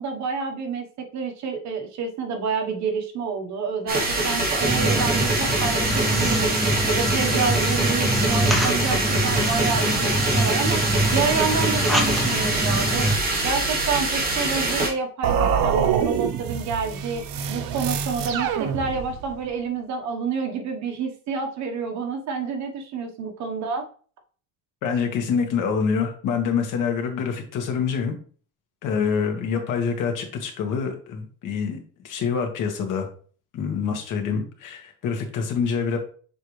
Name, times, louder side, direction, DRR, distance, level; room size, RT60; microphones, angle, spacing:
voice 1, 0.0-6.5 6.9-13.1 13.4-23.8, right 5 dB, 55° right, 4 dB, 1.3 m, -28 dB
sound 1, 3.9-14.9, right 2 dB, 25° right, 1.4 m, -24 dB
sound 2, 4.6-13.2, right 1 dB, ahead, 0.6 m, -25 dB
sound 3, 15.2-19.3, right 7 dB, 85° right, 0.8 m, -25 dB
voice 2, 24.8-28.1 28.8-33.1 33.5-36.0, left 6 dB, 65° left, 4 dB, 1.6 m, -26 dB
6.9 x 4.3 x 3.3 m, 0.43 s
cardioid pair, 175°, 33 cm